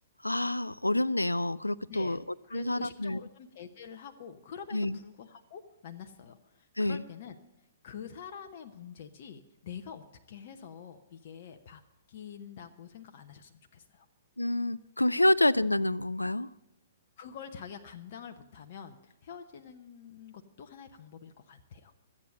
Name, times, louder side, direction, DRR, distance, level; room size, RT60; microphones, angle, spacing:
voice 1, 0.2-2.2 2.5-3.2 4.7-5.0 6.8-7.0 14.4-16.5, left 1 dB, 90° left, 19 dB, 0.4 m, -28 dB
voice 2, 1.9-2.2 2.5-7.4 7.8-11.8 12.1-14.1 17.2-21.9, left 7 dB, 50° left, 6 dB, 0.9 m, -46 dB
13.0 x 8.7 x 7.6 m, 0.96 s
figure-of-eight pair, 115°, 0 cm